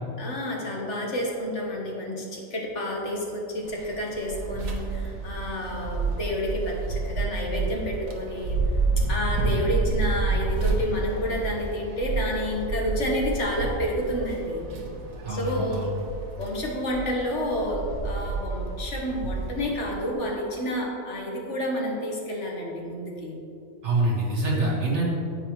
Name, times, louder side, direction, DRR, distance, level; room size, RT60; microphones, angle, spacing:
voice 1, 0.2-8.6 9.0-14.7 15.3-15.9 16.4-23.4, left 1 dB, 60° left, -1 dB, 1.6 m, -29 dB
sound 1, 3.6-20.1, right 3 dB, 80° right, 1.4 m, -30 dB
voice 2, 15.2-15.9 23.8-25.1, right 2 dB, 55° right, -4 dB, 1.9 m, -25 dB
9.3 x 8.6 x 3.0 m, 2.6 s
omnidirectional pair, 1.4 m